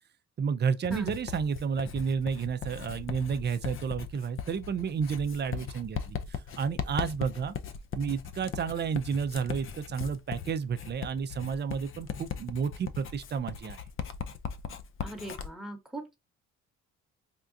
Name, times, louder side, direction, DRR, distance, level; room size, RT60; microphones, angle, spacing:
voice 1, 0.4-6.2 6.6-7.6 7.9-13.8, right 6 dB, 35° right, 0.4 m, -31 dB
Writing, 0.8-15.5, left 7 dB, 45° left, 0.4 m, -39 dB
voice 2, 15.0-16.1, right 1 dB, ahead, 1.0 m, -40 dB
3.6 x 2.3 x 2.6 m
cardioid pair, 90°, 30 cm